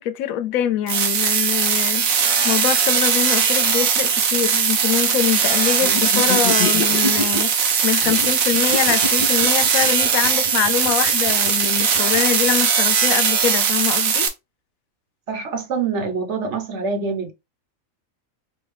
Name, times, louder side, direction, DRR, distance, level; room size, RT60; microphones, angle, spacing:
voice 1, 0.0-14.3, left 10 dB, 85° left, 1.0 m, -24 dB
sound 1, 0.9-14.3, right 6 dB, 80° right, 1.2 m, -19 dB
sound 2, 5.8-7.4 8.0-12.2, left 4 dB, 40° left, 0.8 m, -28 dB
voice 2, 15.3-17.3, right 4 dB, 60° right, 1.3 m, -25 dB
4.6 x 2.6 x 3.2 m
omnidirectional pair, 1.4 m